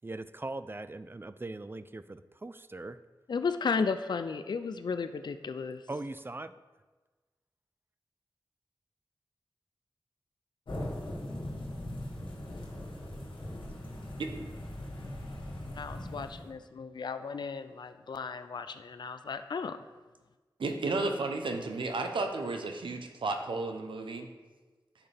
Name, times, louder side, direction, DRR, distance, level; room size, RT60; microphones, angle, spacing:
voice 1, 0.0-3.0 5.9-6.5, right 2 dB, 25° right, 13 dB, 0.4 m, -40 dB
voice 2, 3.3-5.8 15.8-19.8, left 5 dB, 65° left, 10 dB, 0.4 m, -34 dB
sound 1, 10.7-16.5, left 1 dB, 90° left, 1.7 m, -40 dB
voice 3, 20.6-24.3, right 3 dB, 85° right, 4 dB, 0.8 m, -33 dB
10.5 x 5.8 x 3.4 m, 1.3 s
cardioid pair, 45°, 8 cm